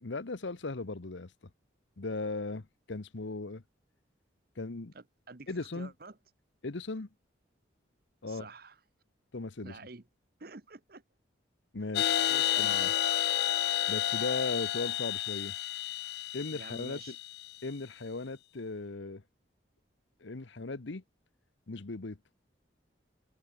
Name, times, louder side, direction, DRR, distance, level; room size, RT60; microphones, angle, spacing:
voice 1, 0.0-1.3 2.0-3.6 4.6-4.9 5.5-5.9 6.6-7.1 8.2-8.5 9.3-9.8 11.7-12.2 12.6-12.9 13.9-15.5 16.3-17.2 17.6-19.2 20.2-21.0 21.7-22.2, left 3 dB, 75° left, 1.0 m, -37 dB
voice 2, 4.9-6.2 8.3-8.8 9.6-10.0 10.4-11.0 12.3-13.0 16.5-17.2, right 3 dB, 50° right, 1.1 m, -48 dB
sound 1, 11.9-17.5, left 12 dB, 55° left, 0.4 m, -31 dB
head